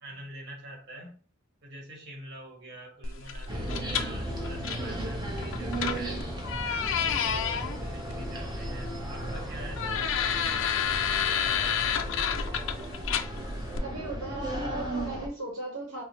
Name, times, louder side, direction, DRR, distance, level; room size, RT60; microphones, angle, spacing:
voice 1, 0.0-1.2 1.6-6.2 6.6-12.1, right 2 dB, 60° right, 1.3 m, -46 dB
sound 1, 3.0-13.8, left 8 dB, 65° left, 0.4 m, -31 dB
sound 2, 3.5-12.3, left 5 dB, 20° left, 0.6 m, -50 dB
sound 3, 3.5-15.3, right 1 dB, 20° right, 0.7 m, -35 dB
voice 2, 13.8-16.0, right 1 dB, 75° right, 1.0 m, -37 dB
4.7 x 2.0 x 2.9 m
head